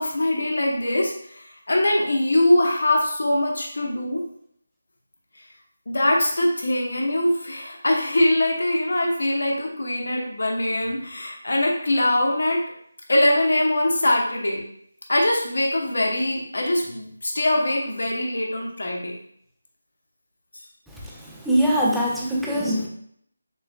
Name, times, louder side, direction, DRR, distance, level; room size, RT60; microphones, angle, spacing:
voice 1, 0.0-4.2 5.9-12.6 13.1-14.6 15.1-19.1, left 1 dB, 70° left, 0 dB, 0.9 m, -22 dB
voice 2, 21.5-22.9, equal, ahead, -6 dB, 0.5 m, -21 dB
6.4 x 2.2 x 2.4 m, 0.67 s
figure-of-eight pair, 165°, 0 cm